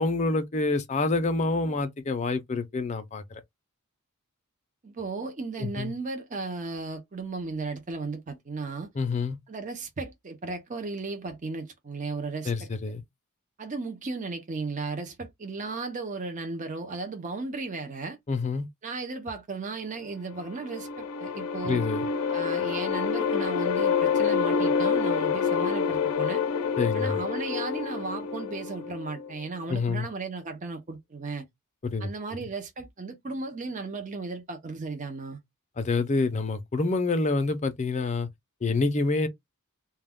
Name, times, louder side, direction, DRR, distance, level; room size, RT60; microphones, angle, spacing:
voice 1, 0.0-3.4 5.6-5.9 9.0-9.4 12.5-13.0 18.3-18.7 21.6-22.0 26.8-27.2 29.7-30.1 31.8-32.1 35.8-38.3 38.6-39.3, left 3 dB, 30° left, 0.5 m, -27 dB
voice 2, 4.8-8.9 9.5-12.7 13.6-18.2 18.8-21.8 22.3-26.4 26.9-31.4 32.0-35.4, right 3 dB, 35° right, 0.5 m, -35 dB
sound 1, 20.3-29.5, left 6 dB, 90° left, 0.5 m, -27 dB
2.2 x 2.2 x 3.4 m
head